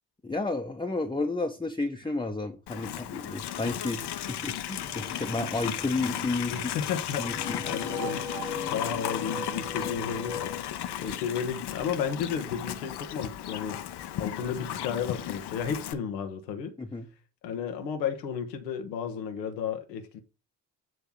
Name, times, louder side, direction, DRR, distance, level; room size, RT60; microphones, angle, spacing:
voice 1, 0.2-6.6 7.2-7.6 16.8-17.1, left 3 dB, 10° left, 1.1 m, -32 dB
Livestock farm animals working animals, 2.7-15.9, left 11 dB, 55° left, 1.0 m, -35 dB
sound 1, 4.8-10.6, left 2 dB, 90° right, 2.9 m, -40 dB
voice 2, 6.5-8.2 8.6-10.4 11.0-13.8 14.1-16.7 17.4-20.2, left 7 dB, 85° left, 1.2 m, -33 dB
9.1 x 3.4 x 5.4 m
hypercardioid pair, 45°, 48 cm